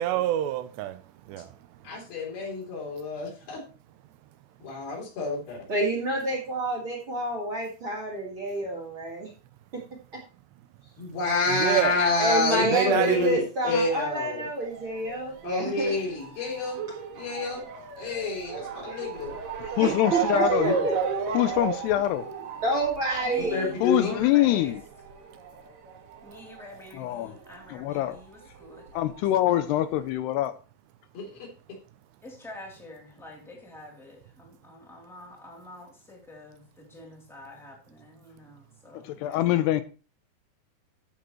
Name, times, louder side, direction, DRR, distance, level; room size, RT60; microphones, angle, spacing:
voice 1, 0.0-1.6 1.9-2.0 11.5-12.0 12.7-13.4, right 13 dB, 85° right, 2.8 m, -27 dB
voice 2, 1.8-3.6 4.7-5.6 11.0-14.5 15.4-16.8 17.1-17.6 18.0-19.4 23.5-24.2 31.1-31.4, left 3 dB, 60° left, 5.2 m, -28 dB
voice 3, 5.7-9.3 9.7-9.8 12.2-16.0 18.9-19.0 19.8-20.9 22.6-23.6, right 1 dB, 40° right, 2.1 m, -28 dB
Motor vehicle (road) / Siren, 14.6-27.6 27.9-29.1 29.7-29.8 30.1-30.2, right 6 dB, 60° right, 2.9 m, -34 dB
voice 4, 19.6-20.8 21.3-22.2 23.8-24.8 27.0-27.3 27.7-28.2 28.9-30.5 39.1-39.8, left 14 dB, 80° left, 2.6 m, -24 dB
voice 5, 23.2-24.8 26.2-28.9 29.4-29.6 32.2-39.5, left 1 dB, ahead, 2.1 m, -46 dB
14.0 x 6.8 x 3.1 m
omnidirectional pair, 4.9 m